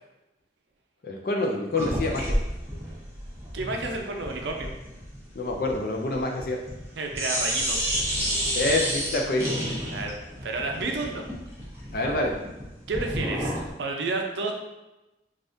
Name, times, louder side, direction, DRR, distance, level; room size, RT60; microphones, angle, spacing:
voice 1, 1.0-2.4 5.3-6.6 8.5-9.5 11.9-12.3, left 2 dB, 55° left, 1 dB, 0.4 m, -26 dB
sound 1, 1.7-6.9 7.1-13.7, equal, 15° right, 0.7 m, -30 dB
voice 2, 3.5-4.7 7.0-7.9 9.9-11.3 12.9-13.5 13.8-14.5, right 3 dB, 85° right, 2 dB, 0.5 m, -30 dB
3.4 x 2.4 x 2.6 m, 0.99 s
head